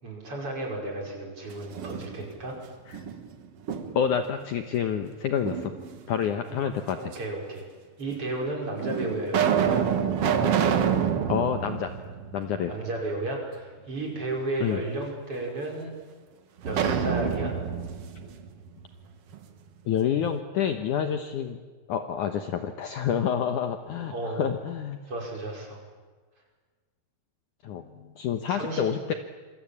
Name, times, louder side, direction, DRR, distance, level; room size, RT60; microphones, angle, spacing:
voice 1, 0.0-2.6 7.0-7.6 8.0-9.8 12.6-16.0 16.6-17.5 24.1-24.5 25.1-25.8 28.5-28.9, right 2 dB, 30° right, 0 dB, 6.2 m, -33 dB
sound 1, 1.5-2.5 2.9-4.2 5.4-6.2 7.1-7.2 8.1-8.2 8.8-12.9 13.2-13.3 16.6-19.4, right 8 dB, 85° right, 1.3 m, -28 dB
voice 2, 3.9-5.7 6.1-7.1 11.3-11.9 12.3-12.7 14.6-14.8 19.9-21.6 21.9-25.0 27.6-29.1, left 8 dB, 80° left, 7 dB, 1.8 m, -28 dB
27.0 x 25.0 x 8.7 m, 1.4 s
omnidirectional pair, 5.3 m